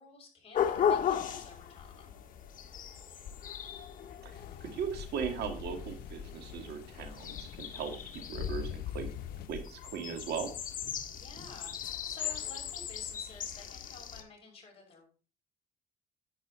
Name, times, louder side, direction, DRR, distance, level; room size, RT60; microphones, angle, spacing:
voice 1, 0.0-2.1 11.1-15.1, left 3 dB, 35° left, 1 dB, 6.0 m, -51 dB
sound 1, 0.5-14.2, left 8 dB, 55° left, 1.6 m, -37 dB
voice 2, 4.2-7.9 8.3-9.1 9.5-10.5, right 7 dB, 75° right, 5 dB, 2.5 m, -38 dB
sound 2, 4.3-9.5, left 10 dB, 70° left, 0.7 m, -44 dB
10.5 x 8.7 x 4.1 m, 0.36 s
cardioid pair, 110°, 17 cm